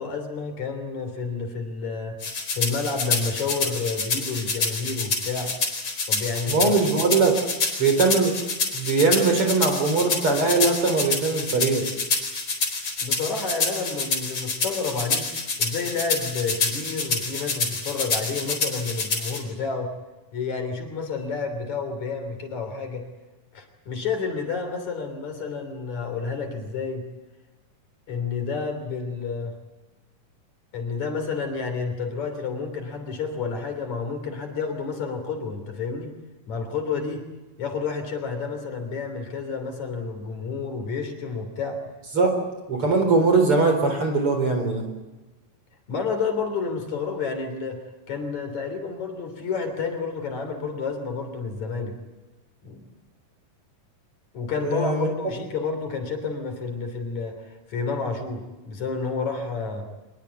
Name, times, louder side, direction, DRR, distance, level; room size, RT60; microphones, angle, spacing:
voice 1, 0.0-2.2 2.5-5.5 6.1-6.8 13.0-15.3 15.6-19.9 20.3-23.0 23.5-27.0 28.1-29.5 30.7-36.1 36.5-37.2 37.6-41.8 45.9-47.8 48.1-52.0 52.6-52.9 54.3-59.9, left 5 dB, 60° left, 5 dB, 4.5 m, -30 dB
sound 1, 2.2-19.4, left 3 dB, 40° left, 5.1 m, -27 dB
voice 2, 6.5-7.4 7.8-8.4 8.7-11.9 42.1-42.3 42.7-44.9 54.6-55.1, right 3 dB, 40° right, 5 dB, 4.7 m, -21 dB
24.5 x 21.5 x 8.3 m, 1.1 s
omnidirectional pair, 3.8 m